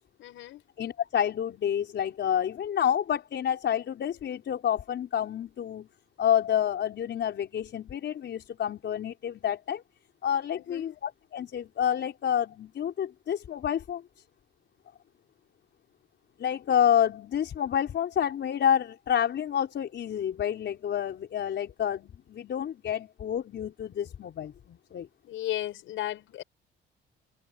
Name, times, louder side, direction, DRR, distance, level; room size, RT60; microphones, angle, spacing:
voice 1, 0.2-0.6 10.5-10.9 25.2-26.4, left 13 dB, 85° left, 6.3 m, -35 dB
voice 2, 0.8-5.9 6.2-9.8 10.2-14.0 16.4-25.1, left 9 dB, 65° left, 5.0 m, -29 dB
cardioid pair, 90°, 20 cm